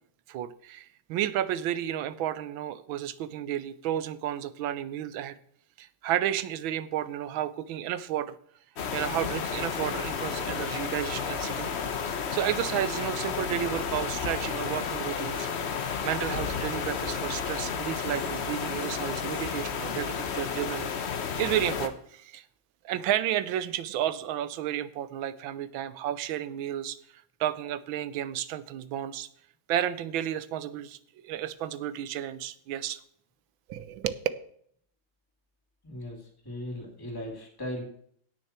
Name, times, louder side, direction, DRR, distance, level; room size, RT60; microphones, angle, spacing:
voice 1, 0.3-5.4 5.8-8.4 8.9-11.7 12.1-15.5 15.8-20.9 21.4-22.4 22.8-27.0 27.4-29.3 29.7-33.0 33.7-34.2, right 11 dB, 85° right, 14 dB, 1.5 m, -32 dB
sound 1, 8.8-21.9, left 6 dB, 50° left, 0.8 m, -32 dB
voice 2, 35.8-37.8, left 1 dB, 10° left, -1 dB, 2.6 m, -38 dB
17.0 x 6.6 x 4.4 m, 0.65 s
omnidirectional pair, 2.1 m